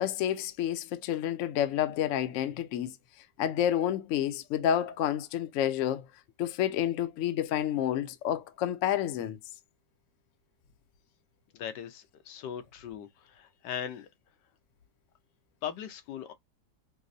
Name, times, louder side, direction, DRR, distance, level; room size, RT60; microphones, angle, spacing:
voice 1, 0.0-3.0 3.4-6.0 6.4-9.4, left 10 dB, 65° left, 0.7 m, -29 dB
voice 2, 11.5-14.1 15.6-16.3, left 9 dB, 85° left, 1.3 m, -39 dB
5.1 x 2.0 x 2.6 m
omnidirectional pair, 1.8 m